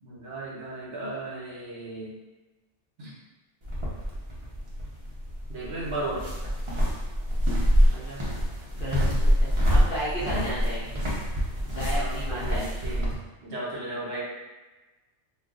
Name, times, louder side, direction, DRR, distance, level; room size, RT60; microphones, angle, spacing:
voice 1, 0.0-2.2 3.0-3.1 5.5-6.3 10.2-10.5 11.9-13.1 13.4-14.2, right 2 dB, 70° right, -6 dB, 1.2 m, -35 dB
sound 1, 3.6-13.1, equal, 35° right, 0.5 m, -26 dB
voice 2, 7.9-8.2 8.8-11.0 11.6-12.7, right 1 dB, 50° left, -7 dB, 1.0 m, -34 dB
2.4 x 2.3 x 3.7 m, 1.1 s
omnidirectional pair, 1.2 m